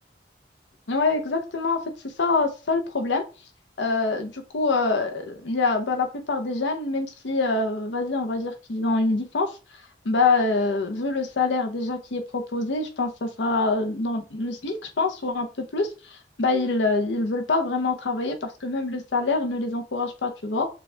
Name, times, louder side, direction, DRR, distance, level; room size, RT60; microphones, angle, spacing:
voice 1, 0.9-3.2 3.8-9.6 10.0-20.7, left 3 dB, 80° left, 4 dB, 0.7 m, -25 dB
6.8 x 2.3 x 3.2 m, 0.33 s
head